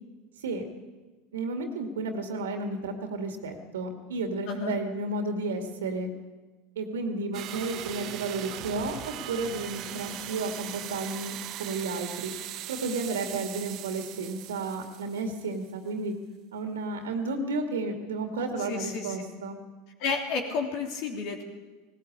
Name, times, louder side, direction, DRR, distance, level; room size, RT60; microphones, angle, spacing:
voice 1, 1.3-6.1 6.8-12.3 12.7-16.1 16.5-19.6, right 3 dB, 70° right, 5 dB, 2.3 m, -32 dB
sound 1, 7.3-15.7, right 12 dB, 45° right, 1.3 m, -39 dB
voice 2, 18.7-19.2 20.0-21.4, left 4 dB, 50° left, 2 dB, 3.2 m, -31 dB
19.0 x 18.0 x 8.7 m, 1.3 s
figure-of-eight pair, 80°, 0 cm